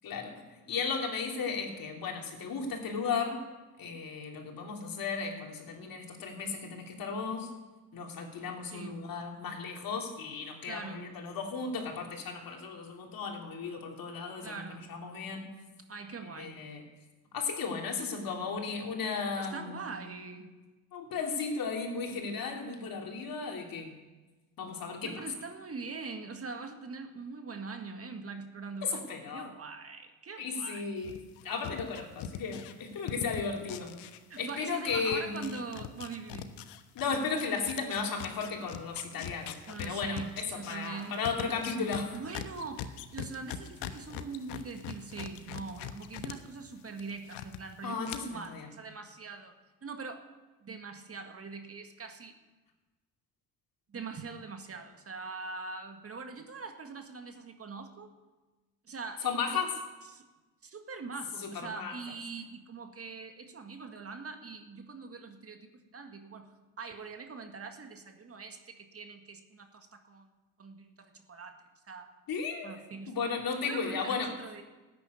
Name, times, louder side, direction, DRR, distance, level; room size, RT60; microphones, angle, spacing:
voice 1, 0.0-0.3 0.7-3.4 3.8-7.5 7.9-14.6 14.9-15.5 16.2-16.8 17.3-20.0 20.9-23.9 24.6-25.2 28.8-29.5 30.4-31.1 31.4-33.9 34.4-35.5 36.9-42.2 47.8-48.7 59.2-59.7 61.4-61.9 72.3-72.7 73.1-74.3, left 5 dB, 50° left, 1 dB, 3.3 m, -35 dB
voice 2, 8.7-9.1 10.7-11.1 14.4-15.0 15.9-16.6 19.4-20.5 25.0-30.8 34.3-36.6 39.7-41.3 41.9-49.5 49.8-50.2 50.6-52.4 53.9-58.1 58.9-59.4 60.1-60.3 60.6-70.3 70.6-71.6 71.9-72.1 72.6-73.2 73.6-74.6, right 4 dB, 35° right, 6 dB, 1.8 m, -43 dB
sound 1, 31.0-34.6 34.9-46.3 46.7-47.6 48.0-48.2, left 10 dB, 70° left, 1.2 m, -41 dB
13.5 x 9.5 x 9.7 m, 1.2 s
supercardioid pair, 75°, 42 cm